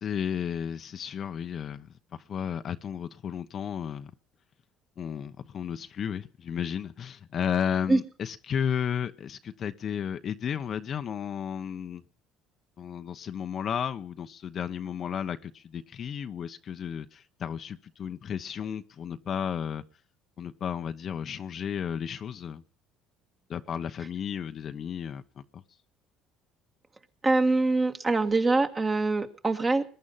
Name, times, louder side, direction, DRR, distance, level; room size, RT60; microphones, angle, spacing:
voice 1, 0.0-4.1 5.0-12.0 12.8-19.8 20.4-22.6 23.5-25.6, left 8 dB, 45° left, 1.0 m, -33 dB
voice 2, 27.2-29.8, right 3 dB, 25° right, 1.9 m, -24 dB
21.0 x 10.5 x 5.7 m
cardioid pair, 105°, 0 cm